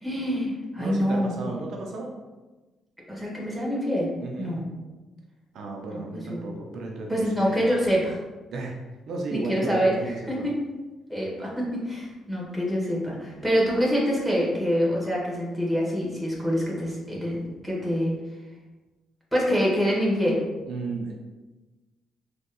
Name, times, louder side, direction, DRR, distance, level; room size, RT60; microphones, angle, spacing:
voice 1, 0.0-1.3 3.1-4.1 4.4-4.7 5.9-6.5 7.1-8.2 9.3-9.9 10.3-10.7 11.1-18.1 19.3-20.4, equal, ahead, -5 dB, 1.1 m, -26 dB
voice 2, 0.8-2.1 4.2-4.6 5.5-7.6 8.5-8.8 9.1-10.4 20.7-21.1, right 2 dB, 70° right, 0 dB, 0.5 m, -33 dB
3.5 x 2.6 x 2.2 m, 1.2 s
cardioid pair, 90°, 0 cm